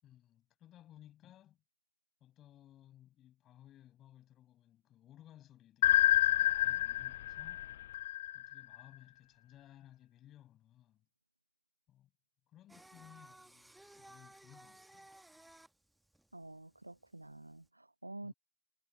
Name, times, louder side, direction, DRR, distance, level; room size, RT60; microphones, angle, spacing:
voice 1, 0.0-1.6 2.2-7.6 8.3-11.0 11.9-12.1 12.5-15.1 18.2-18.3, left 12 dB, 30° left, 6.8 m, -60 dB
sound 1, 5.8-8.8, left 13 dB, 55° left, 0.4 m, -29 dB
Singing, 12.7-17.7, right 1 dB, 5° right, 1.5 m, -58 dB
voice 2, 16.3-18.3, right 2 dB, 85° right, 1.2 m, -49 dB
figure-of-eight pair, 90°, 0 cm